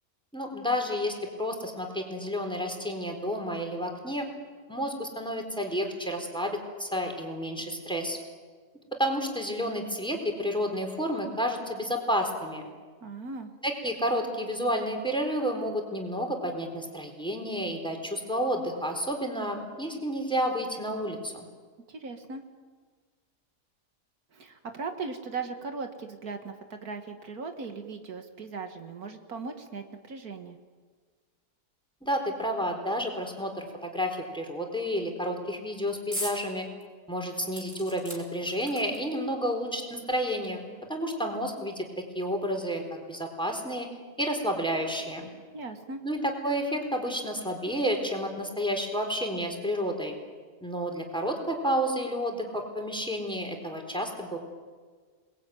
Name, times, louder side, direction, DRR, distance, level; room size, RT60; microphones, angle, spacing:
voice 1, 0.3-4.3 4.7-8.2 9.0-12.6 13.6-21.5 32.0-36.7 37.1-41.9 42.1-43.9 44.2-45.3 46.0-50.2 50.6-54.4, equal, 5° left, 3 dB, 3.9 m, -30 dB
voice 2, 13.0-13.5 21.9-22.4 24.3-30.6 45.5-46.0, right 4 dB, 70° right, 6 dB, 2.1 m, -38 dB
sound 1, 36.1-36.4 36.8-36.9 37.5-39.2 40.1-40.2 40.4-40.5, equal, 20° right, 5.3 m, -38 dB
28.5 x 20.5 x 9.3 m, 1.5 s
omnidirectional pair, 1.7 m